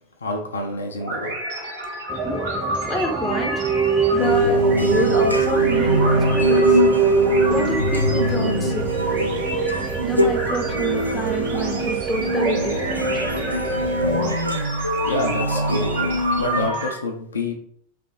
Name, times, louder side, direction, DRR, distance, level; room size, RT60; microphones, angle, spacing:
voice 1, 0.2-1.3 15.0-17.6, left 2 dB, 70° left, 2 dB, 0.6 m, -27 dB
sound 1, 1.0-16.9, right 1 dB, 55° right, 1.3 m, -30 dB
sound 2, 2.1-14.4, right 5 dB, 15° right, 0.3 m, -23 dB
voice 2, 2.8-3.6 4.1-6.8 7.5-8.9 10.0-13.1, right 1 dB, 10° left, 2 dB, 0.9 m, -28 dB
Mystic stringz, 4.2-16.7, left 1 dB, 90° right, 0.3 m, -24 dB
3.3 x 3.0 x 4.2 m, 0.66 s
figure-of-eight pair, 90°, 0 cm